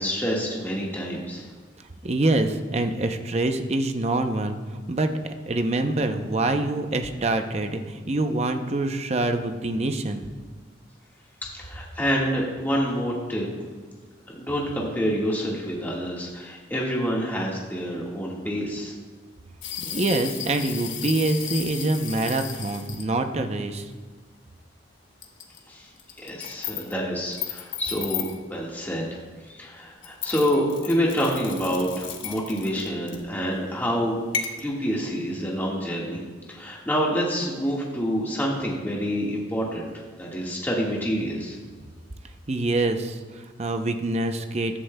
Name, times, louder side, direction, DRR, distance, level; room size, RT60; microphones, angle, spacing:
voice 1, 0.0-1.5 11.4-13.5 14.3-18.9 25.7-25.9 26.2-34.2 34.6-36.2 36.5-39.9 40.2-41.6, equal, 10° left, -4 dB, 1.6 m, -27 dB
voice 2, 2.0-4.6 4.9-10.3 19.8-23.8 42.5-44.8, right 2 dB, 35° right, 7 dB, 0.6 m, -25 dB
sound 1, 19.6-23.0 23.8-23.9 25.2-25.6 26.0-26.9 27.3-28.4 30.0-33.3 34.3-34.6, left 8 dB, 85° left, 1.1 m, -34 dB
14.5 x 11.5 x 2.2 m, 1.4 s
head